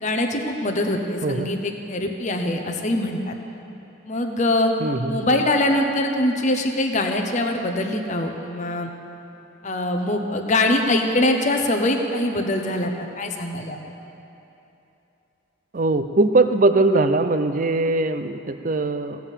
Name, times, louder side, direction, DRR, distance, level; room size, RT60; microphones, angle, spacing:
voice 1, 0.0-3.3 4.1-4.7 5.1-8.9 9.6-12.9 13.2-13.8, left 1 dB, 35° left, 3 dB, 0.8 m, -23 dB
voice 2, 4.8-5.4 15.7-19.2, right 2 dB, 40° right, 10 dB, 0.5 m, -21 dB
16.5 x 5.8 x 8.1 m, 2.9 s
head